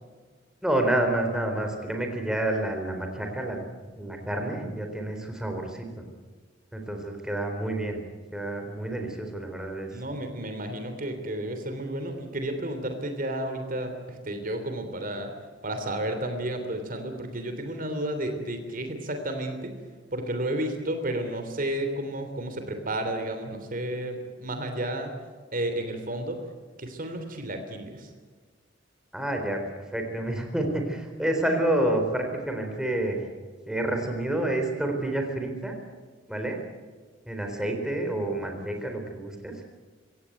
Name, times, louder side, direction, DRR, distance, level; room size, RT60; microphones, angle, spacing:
voice 1, 0.6-3.6 3.9-5.9 6.7-8.0 8.3-9.9 29.1-29.6 29.9-33.3 33.7-35.8 36.3-36.6 37.3-39.6, right 1 dB, 5° right, 3 dB, 3.9 m, -29 dB
voice 2, 9.9-15.3 15.6-19.7 20.1-25.1 25.5-26.4 26.8-28.1 31.5-31.6, right 1 dB, 50° right, 6 dB, 3.2 m, -32 dB
24.5 x 17.0 x 9.2 m, 1.5 s
head